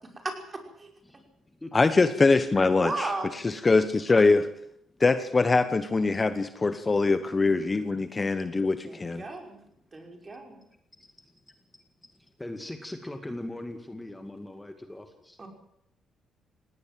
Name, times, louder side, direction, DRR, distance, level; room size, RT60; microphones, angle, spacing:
voice 1, 0.2-0.9 2.8-3.3 8.8-9.6 9.9-10.6 15.4-15.5, right 3 dB, 30° right, 3 dB, 5.5 m, -35 dB
voice 2, 1.0-1.7 6.6-6.7 11.0-11.4 12.1-15.4, left 1 dB, 10° left, 6 dB, 2.1 m, -41 dB
voice 3, 1.7-4.5 5.0-9.2, left 3 dB, 25° left, 11 dB, 1.1 m, -23 dB
18.5 x 18.0 x 7.7 m, 0.75 s
cardioid pair, 90°, 0 cm